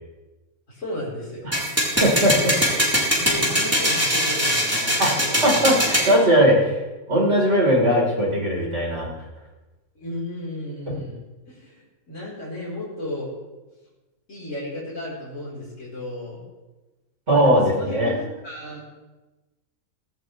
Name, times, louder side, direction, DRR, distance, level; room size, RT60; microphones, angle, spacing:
voice 1, 0.7-1.5 3.1-5.9 9.9-11.2 11.5-13.3 14.3-16.4 17.3-18.8, left 1 dB, 55° left, -7 dB, 4.7 m, -34 dB
sound 1, 1.5-6.1, equal, 10° right, 3.9 m, -21 dB
voice 2, 2.0-2.6 5.0-6.8 7.1-9.1 17.3-18.1, equal, 50° right, -3 dB, 4.6 m, -19 dB
17.0 x 16.5 x 3.3 m, 1.1 s
omnidirectional pair, 1.5 m